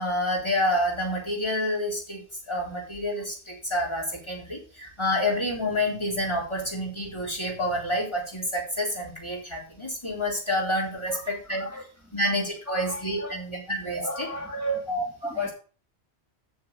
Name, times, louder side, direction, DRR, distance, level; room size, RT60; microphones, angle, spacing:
voice 1, 0.0-11.8 12.1-14.3 14.9-15.5, left 1 dB, 25° left, 3.8 m, -28 dB
voice 2, 11.1-11.9 12.7-13.4 13.9-14.9 15.3-15.5, right 2 dB, 15° right, 1.6 m, -34 dB
7.1 x 6.7 x 7.0 m
omnidirectional pair, 1.1 m